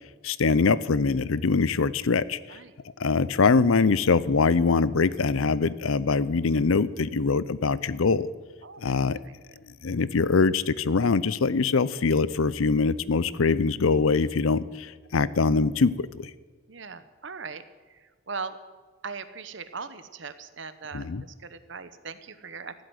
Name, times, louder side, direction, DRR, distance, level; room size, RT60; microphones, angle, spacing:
voice 1, 0.2-2.6 3.0-8.3 8.8-9.2 9.8-16.3 20.9-21.2, left 4 dB, 80° left, 18 dB, 0.6 m, -23 dB
voice 2, 16.7-18.6 19.0-21.1 21.4-22.7, right 5 dB, 60° right, 12 dB, 1.0 m, -39 dB
15.0 x 7.9 x 9.5 m, 1.4 s
head